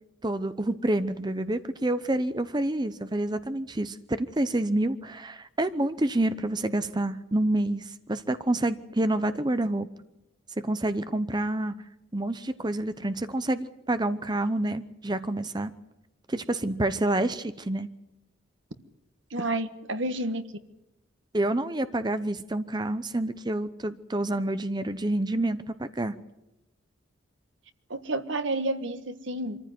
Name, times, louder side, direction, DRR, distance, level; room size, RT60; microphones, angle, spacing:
voice 1, 0.2-9.9 10.6-11.7 12.1-15.7 16.3-17.9 21.3-26.1, right 1 dB, 20° right, 11 dB, 0.8 m, -28 dB
voice 2, 19.3-20.5 27.9-29.6, right 2 dB, 70° right, 10 dB, 1.6 m, -30 dB
25.5 x 14.5 x 9.3 m, 0.94 s
head